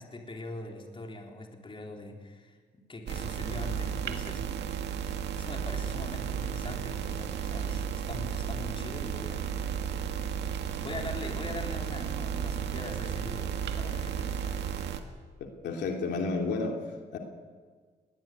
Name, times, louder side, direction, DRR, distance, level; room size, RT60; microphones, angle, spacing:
voice 1, 0.0-4.5 5.3-9.5 10.8-14.6 15.0-15.1, left 2 dB, 30° left, 2 dB, 4.0 m, -42 dB
sound 1, 3.1-15.0, right 8 dB, 90° right, 1.9 m, -33 dB
voice 2, 15.4-16.8 17.1-17.2, left 3 dB, 90° left, 2 dB, 2.9 m, -31 dB
21.0 x 18.0 x 9.4 m, 1.6 s
cardioid pair, 105°, 17 cm